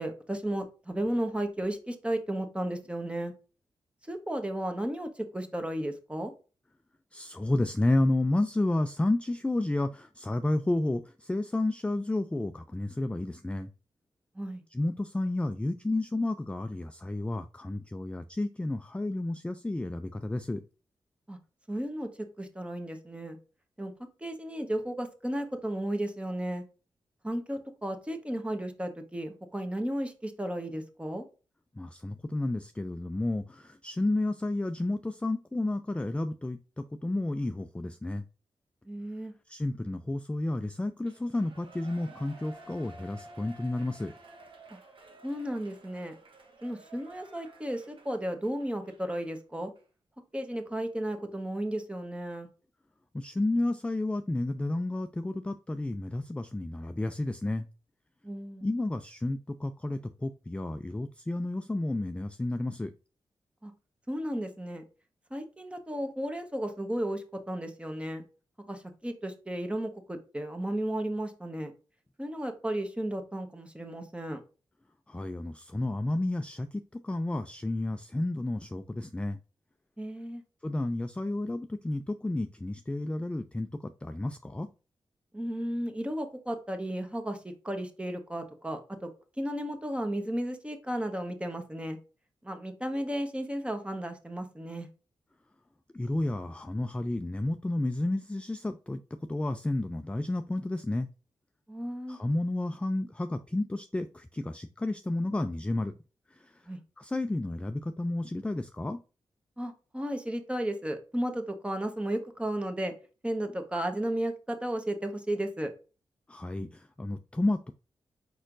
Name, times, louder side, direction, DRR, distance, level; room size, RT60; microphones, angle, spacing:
voice 1, 0.0-3.3 4.1-6.3 14.3-14.6 21.3-21.4 21.7-22.1 22.4-23.4 23.8-23.9 24.2-26.6 27.2-31.2 38.9-39.3 45.2-46.1 46.6-49.7 50.3-52.5 58.2-58.7 63.6-63.7 64.1-64.8 65.3-68.2 68.7-71.7 72.2-74.4 80.0-80.4 85.3-87.4 87.6-89.1 89.4-92.0 92.4-94.9 101.7-102.2 106.7-106.8 109.6-112.9 113.2-115.7, right 1 dB, 10° right, 6 dB, 1.1 m, -34 dB
voice 2, 7.1-13.7 14.7-20.6 31.8-38.2 39.5-44.1 53.1-57.7 58.6-62.9 75.1-79.4 80.6-84.7 95.9-99.0 99.3-101.1 102.1-105.9 106.3-106.5 107.0-109.0 116.3-117.7, left 2 dB, 10° left, 8 dB, 0.4 m, -31 dB
Shout / Cheering, 41.0-49.4 49.8-49.9, right 2 dB, 65° right, 1.2 m, -53 dB
4.8 x 4.3 x 2.6 m, 0.34 s
cardioid pair, 55°, 9 cm